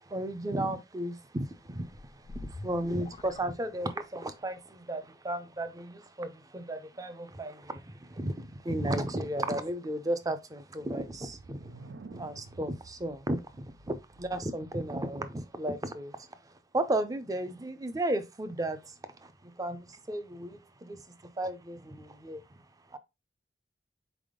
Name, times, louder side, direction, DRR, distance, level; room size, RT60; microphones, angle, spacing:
voice 1, 0.1-11.7 12.1-16.3 16.7-18.9 19.2-21.0 21.4-22.4 22.9-23.0, right 1 dB, 20° right, 0.5 m, -34 dB
sound 1, 1.6-4.3, left 2 dB, 35° left, 0.4 m, -46 dB
sound 2, 11.0-14.7, right 3 dB, 90° right, 0.5 m, -50 dB
4.2 x 3.5 x 3.6 m
head